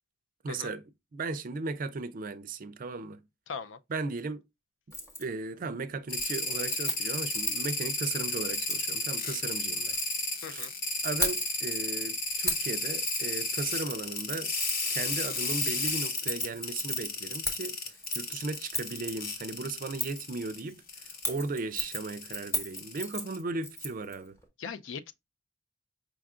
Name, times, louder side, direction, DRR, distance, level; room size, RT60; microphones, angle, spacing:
voice 1, 0.4-0.8 1.1-3.2 3.9-4.4 5.2-10.0 10.5-10.7 11.0-14.5 14.9-24.4, right 3 dB, 45° right, 0.4 m, -36 dB
voice 2, 3.5-3.8 10.4-10.7 24.6-25.1, left 6 dB, 70° left, 0.4 m, -39 dB
Keys jangling, 4.9-5.2 5.6-5.9 6.1-7.7 8.5-8.9 9.7-10.7 11.0-11.8 12.5-12.7 13.1-13.2 13.5-19.1 20.0-20.3 21.1-24.1 24.4-24.5, left 1 dB, 15° left, 1.0 m, -35 dB
sound 1, 6.1-20.6 20.9-21.3 21.8-23.4, left 3 dB, 50° left, 0.9 m, -33 dB
5.0 x 2.4 x 3.6 m
head